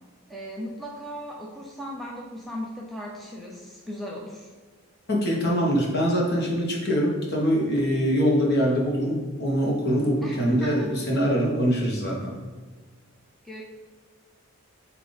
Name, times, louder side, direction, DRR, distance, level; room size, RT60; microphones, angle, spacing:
voice 1, 0.3-4.5 10.2-11.1 13.4-13.6, equal, ahead, -3 dB, 0.6 m, -37 dB
voice 2, 5.1-12.3, equal, 50° left, -2 dB, 1.3 m, -23 dB
8.5 x 2.9 x 4.0 m, 1.4 s
head